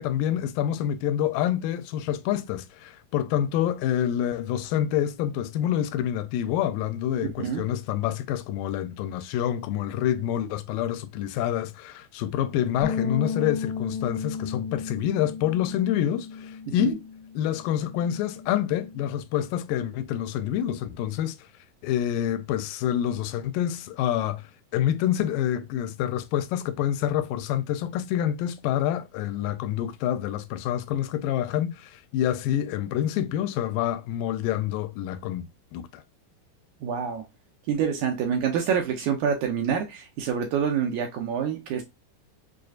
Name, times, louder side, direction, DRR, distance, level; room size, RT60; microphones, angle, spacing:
voice 1, 0.0-17.0 17.4-21.4 21.8-35.4 35.7-36.0, left 11 dB, 80° left, 2.0 m, -27 dB
sound 1, 12.8-19.1, left 6 dB, 65° left, 1.2 m, -34 dB
voice 2, 36.8-37.2 37.7-41.8, right 7 dB, 80° right, 1.7 m, -26 dB
6.3 x 2.4 x 2.3 m
omnidirectional pair, 4.3 m